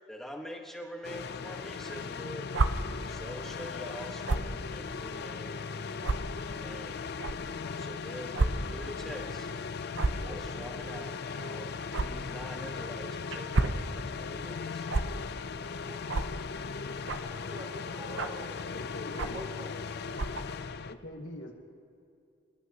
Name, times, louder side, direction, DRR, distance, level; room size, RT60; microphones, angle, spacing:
voice 1, 0.1-2.5 3.1-5.7 6.4-7.0 7.8-9.5 10.3-11.7 12.0-14.9, equal, ahead, 1 dB, 1.3 m, -45 dB
sound 1, 1.0-20.9, left 5 dB, 55° left, 0.4 m, -38 dB
sound 2, 2.5-2.7 4.2-4.5 5.2-5.3 6.0-6.2 7.2-7.3 8.3-8.5 8.8-9.0 9.9-10.2 11.9-12.1 13.3-13.8 14.9-15.0 16.1-16.3 17.1-17.3 18.2-18.4 19.2-19.4 20.1-20.4, right 3 dB, 75° right, 0.7 m, -28 dB
voice 2, 17.3-18.7 19.1-19.8, left 1 dB, 25° right, -9 dB, 3.0 m, -46 dB
voice 3, 18.0-19.4 20.8-21.6, left 1 dB, 70° left, 0 dB, 1.5 m, -44 dB
26.0 x 12.5 x 2.9 m, 2.5 s
head